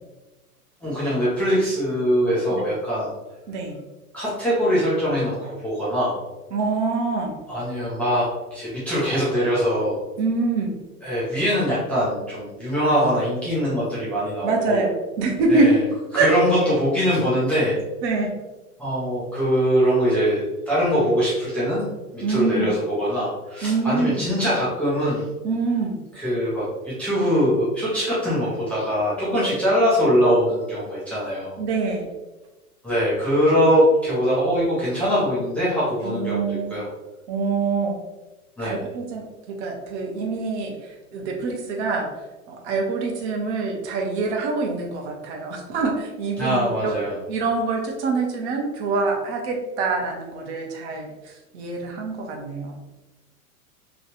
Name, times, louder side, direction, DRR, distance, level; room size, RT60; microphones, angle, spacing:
voice 1, 0.8-3.1 4.1-6.2 7.5-10.0 11.0-14.8 15.5-15.8 16.1-17.8 18.8-21.9 22.1-25.3 26.1-31.6 32.8-36.9 38.6-38.8 46.4-47.2, equal, 5° left, -11 dB, 0.3 m, -22 dB
voice 2, 6.5-7.4 10.2-10.7 14.4-15.7 16.1-16.3 18.0-18.3 22.2-22.7 23.6-24.2 25.4-26.0 29.4-29.5 31.6-32.1 36.0-36.8 37.3-37.9 38.6-42.1 42.5-46.9 47.3-52.9, right 3 dB, 50° right, 2 dB, 0.8 m, -25 dB
3.0 x 2.3 x 2.9 m, 1.1 s
hypercardioid pair, 105°, 45 cm